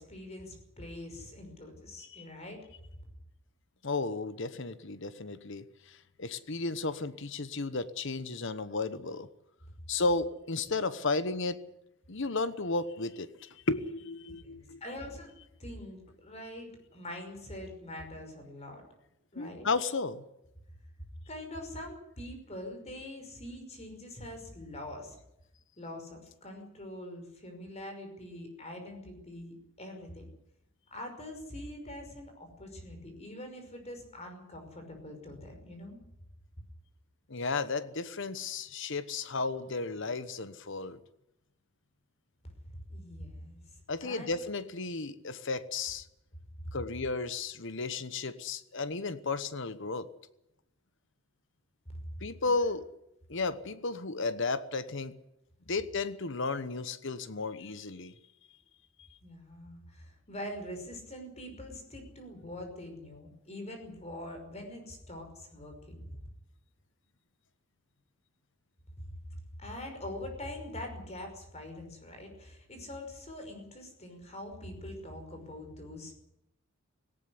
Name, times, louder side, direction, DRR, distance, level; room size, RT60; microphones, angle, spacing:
voice 1, 0.0-2.6 14.3-15.3 15.6-18.8 19.3-19.7 21.3-25.2 25.8-30.3 30.9-36.0 42.9-43.6 44.0-44.4 52.1-52.7 59.2-66.2 69.6-76.2, left 1 dB, 30° left, 5 dB, 5.5 m, -44 dB
voice 2, 3.8-9.3 9.9-11.6 12.1-14.8 19.4-20.2 37.3-41.0 43.9-46.1 46.7-50.1 52.2-52.9 53.3-55.1 55.7-58.1 59.0-59.1, left 3 dB, 60° left, 14 dB, 1.1 m, -33 dB
18.5 x 17.5 x 9.8 m, 0.84 s
head